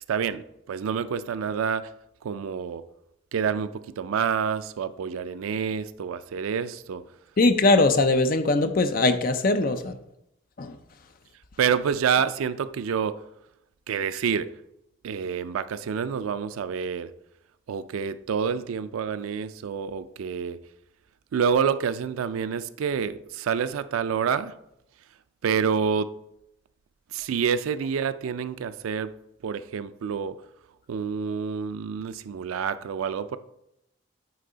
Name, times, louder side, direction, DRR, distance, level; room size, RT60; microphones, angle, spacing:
voice 1, 0.1-1.9 2.2-2.8 3.3-7.0 11.6-13.1 13.9-14.5 15.0-17.1 17.7-20.6 21.3-24.5 25.4-26.1 27.1-29.1 29.4-30.4 30.9-33.4, right 7 dB, 85° right, 13 dB, 0.3 m, -27 dB
voice 2, 7.4-9.9 10.6-10.8, left 2 dB, 45° left, 9 dB, 0.5 m, -21 dB
8.9 x 3.3 x 3.9 m, 0.82 s
head